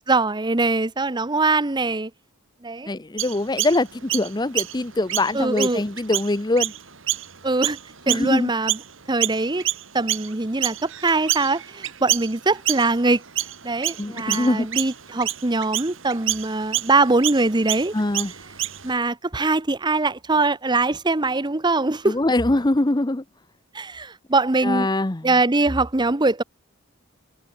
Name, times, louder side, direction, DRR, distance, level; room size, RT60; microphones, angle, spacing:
voice 1, 0.1-2.1 2.6-2.9 5.3-5.8 7.4-7.8 8.1-8.8 9.1-9.7 9.9-13.2 13.6-17.9 18.8-22.2 23.7-24.9 25.2-26.4, right 3 dB, 20° right, 0.9 m, -22 dB
voice 2, 2.9-6.7 8.1-8.5 14.0-14.7 17.9-18.3 22.1-23.2 24.6-25.3, left 2 dB, 20° left, 0.8 m, -23 dB
Chirp tweet, 3.2-8.9 9.2-18.9, right 13 dB, 65° right, 3.0 m, -28 dB
head